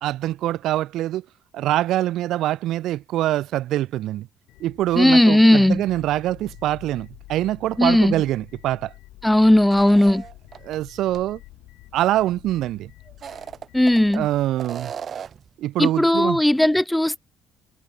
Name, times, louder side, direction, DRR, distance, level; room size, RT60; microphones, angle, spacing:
voice 1, 0.0-1.2 1.5-4.3 4.6-8.9 10.6-11.4 11.9-12.9 14.1-14.9 15.6-16.4, right 14 dB, 75° right, 0.5 m, -24 dB
sound 1, 4.5-14.5, left 18 dB, 85° left, 4.0 m, -47 dB
voice 2, 5.0-5.8 7.8-8.1 9.2-10.2 13.7-14.3 15.8-17.2, left 1 dB, 5° left, 0.3 m, -16 dB
sound 2, 9.7-10.8 11.1-11.2 13.1-14.2 14.6-15.5, right 7 dB, 55° right, 1.1 m, -36 dB
supercardioid pair, 65°, 0 cm